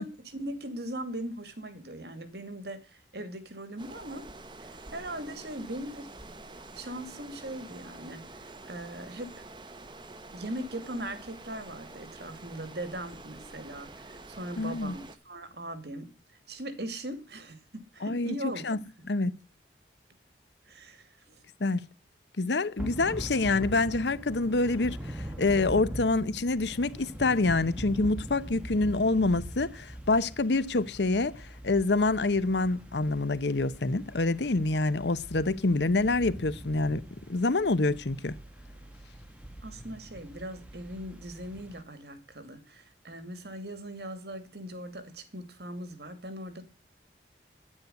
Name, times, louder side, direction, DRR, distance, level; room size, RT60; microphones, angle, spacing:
voice 1, 0.0-4.2 4.7-6.1 6.7-8.2 8.7-9.3 10.3-16.1 16.5-18.6 20.7-21.4 39.6-46.6, right 1 dB, 65° right, 2.5 m, -40 dB
sound 1, 3.8-15.2, right 2 dB, 25° right, 1.2 m, -47 dB
voice 2, 14.6-15.0 18.0-18.3 18.6-18.8 19.1-19.3 21.6-21.9 22.4-37.0 37.3-38.3, left 3 dB, 75° left, 0.8 m, -26 dB
Thunder / Rain, 22.8-41.8, equal, 5° right, 1.8 m, -42 dB
9.9 x 9.8 x 8.0 m
head